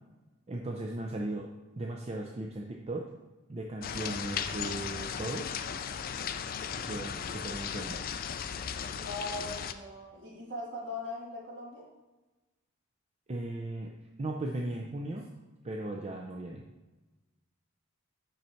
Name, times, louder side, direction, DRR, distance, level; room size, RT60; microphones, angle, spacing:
voice 1, 0.5-1.5 1.8-3.1 3.5-5.5 6.8-8.0 13.3-15.3 15.6-16.7, right 2 dB, 30° right, 0 dB, 0.5 m, -37 dB
sound 1, 3.8-9.7, left 7 dB, 45° left, 0.3 m, -36 dB
voice 2, 9.0-11.9, left 2 dB, 55° right, -3 dB, 1.9 m, -40 dB
5.6 x 5.5 x 4.4 m, 1.1 s
head